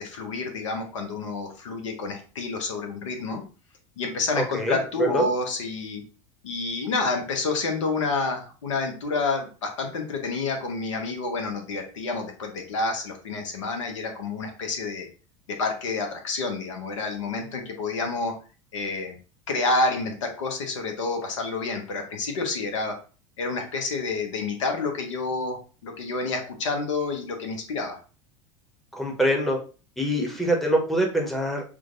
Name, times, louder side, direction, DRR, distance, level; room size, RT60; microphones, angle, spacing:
voice 1, 0.0-3.4 4.0-6.0 6.4-15.1 15.5-18.3 18.7-19.1 19.5-23.0 23.4-28.0, left 3 dB, 65° left, 4 dB, 0.9 m, -29 dB
voice 2, 4.3-5.3 28.9-29.6 30.0-31.6, right 1 dB, ahead, 0 dB, 0.9 m, -24 dB
6.1 x 2.2 x 2.5 m, 0.36 s
figure-of-eight pair, 75°, 17 cm